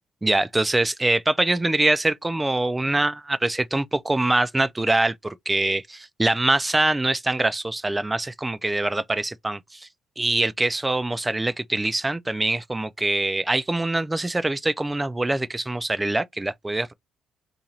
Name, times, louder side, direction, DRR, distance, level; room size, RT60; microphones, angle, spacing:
voice 1, 0.2-9.9 10.2-16.9, right 2 dB, 10° right, 0.3 m, -24 dB
2.9 x 2.8 x 3.9 m
cardioid pair, 135°, 0 cm